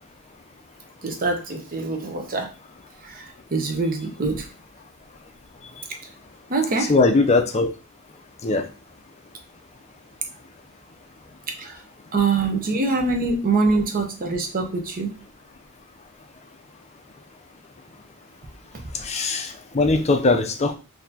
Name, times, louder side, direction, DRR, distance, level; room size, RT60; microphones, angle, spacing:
voice 1, 1.0-2.5 3.0-4.5 6.5-6.9 11.6-11.8 12.1-15.2 18.7-18.8, right 3 dB, 40° right, 4 dB, 0.7 m, -24 dB
voice 2, 6.9-7.7 8.4-8.6 19.0-20.7, left 3 dB, 30° left, 5 dB, 0.5 m, -20 dB
4.1 x 2.7 x 2.8 m, 0.31 s
head